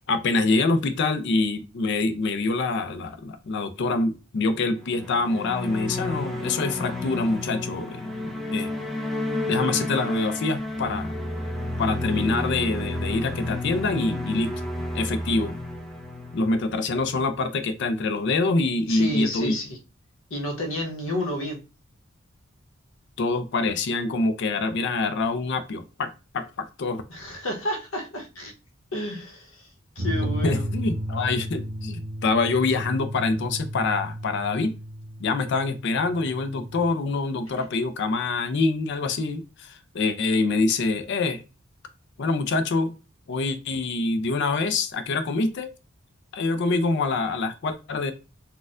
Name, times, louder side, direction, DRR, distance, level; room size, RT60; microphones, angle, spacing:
voice 1, 0.1-8.1 8.5-8.7 9.5-11.1 11.8-14.5 14.9-15.6 16.3-19.5 23.2-26.1 26.3-27.0 30.2-34.7 35.2-41.4 42.2-43.0 43.3-45.7 46.3-48.1, left 3 dB, 60° left, 9 dB, 0.4 m, -25 dB
sound 1, 4.7-17.2, left 1 dB, ahead, 0.5 m, -31 dB
voice 2, 18.9-19.8 20.3-21.6 27.1-28.5 28.9-29.7 30.0-30.7, left 1 dB, 90° left, 1 dB, 1.0 m, -31 dB
sound 2, 30.0-36.9, equal, 50° right, 0.6 m, -33 dB
4.1 x 2.3 x 2.4 m, 0.31 s
head